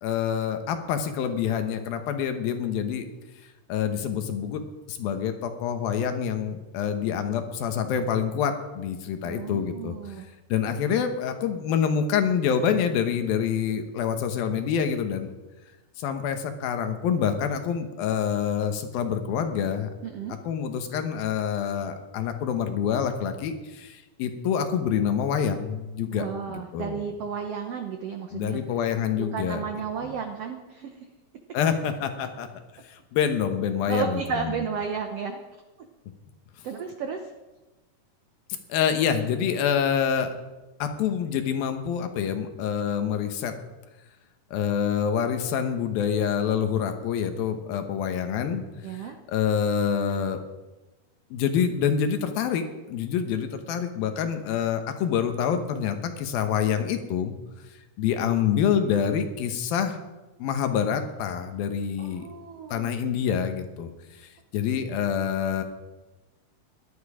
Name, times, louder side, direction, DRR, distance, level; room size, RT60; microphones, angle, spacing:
voice 1, 0.0-3.1 3.7-4.6 4.9-10.0 10.5-15.3 16.0-19.9 20.4-27.0 28.3-29.6 30.0-30.1 31.5-32.5 32.9-34.6 38.7-40.3 40.8-43.5 44.5-50.4 51.3-57.3 58.0-60.0 60.4-62.2 62.7-63.9 64.5-65.6, left 8 dB, 85° left, 7 dB, 3.0 m, -26 dB
voice 2, 9.2-10.2 20.0-20.4 26.1-28.6 29.2-30.9 33.9-35.4 36.6-37.2 48.8-49.2 62.0-62.9, right 6 dB, 70° right, 4 dB, 1.5 m, -33 dB
17.0 x 12.0 x 5.0 m, 1.1 s
omnidirectional pair, 4.1 m